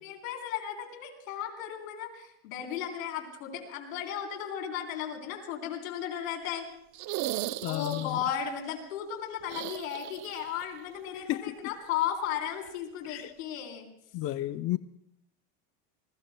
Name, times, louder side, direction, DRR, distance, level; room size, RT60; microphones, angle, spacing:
voice 1, 0.0-6.6 7.6-13.9, left 9 dB, 90° left, 3 dB, 3.8 m, -35 dB
sound 1, 6.9-8.3 9.4-10.6 10.9-11.0 12.6-12.7, right 15 dB, 45° right, 0.6 m, -37 dB
voice 2, 7.6-8.2 11.3-11.5 13.1-13.3 14.1-14.8, left 15 dB, 35° left, 12 dB, 0.5 m, -32 dB
27.5 x 21.0 x 2.2 m, 0.76 s
supercardioid pair, 120°, 40 cm